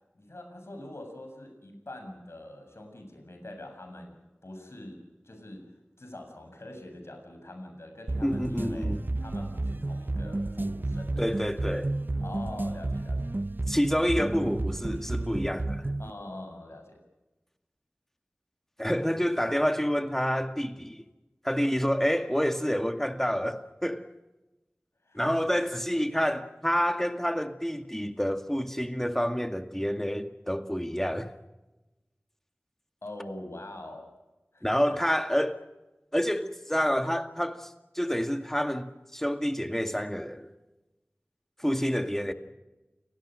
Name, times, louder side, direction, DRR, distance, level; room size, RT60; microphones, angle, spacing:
voice 1, 0.1-8.9 9.2-11.3 12.2-13.4 16.0-17.0 25.0-25.4 33.0-34.1 34.5-35.0, left 1 dB, 90° left, 7.4 m, -44 dB
sound 1, 8.1-16.1, right 2 dB, 50° right, 0.8 m, -31 dB
voice 2, 8.2-9.0 11.2-11.9 13.7-15.9 18.8-21.0 21.4-24.1 25.1-31.3 34.6-35.7 36.1-40.5 41.6-42.3, equal, 10° left, 2.2 m, -28 dB
30.0 x 19.5 x 6.4 m
wide cardioid pair, 40°, 4 cm